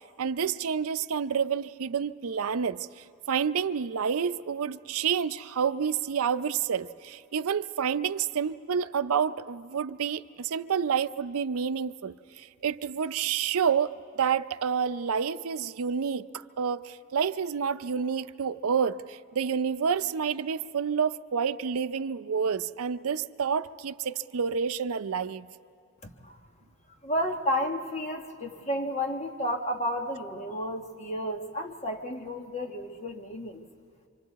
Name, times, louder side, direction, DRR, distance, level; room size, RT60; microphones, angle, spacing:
voice 1, 0.2-25.5, right 7 dB, 80° right, 12 dB, 0.5 m, -29 dB
voice 2, 26.0-26.4 27.0-33.6, equal, 30° left, 3 dB, 1.3 m, -32 dB
26.5 x 25.5 x 4.1 m, 2.5 s
head